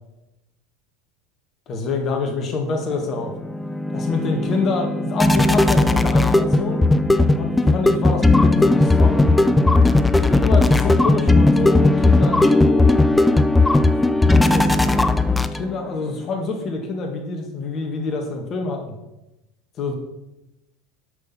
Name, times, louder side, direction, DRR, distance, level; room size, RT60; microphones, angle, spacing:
voice 1, 1.7-3.3 3.9-6.8 7.4-9.3 10.3-13.0 14.2-14.9 15.5-19.0 19.8-19.9, left 3 dB, 40° left, 3 dB, 1.8 m, -27 dB
sound 1, 3.1-15.9, left 2 dB, 10° left, 0.5 m, -17 dB
6.4 x 6.3 x 5.9 m, 0.94 s
figure-of-eight pair, 75°, 0 cm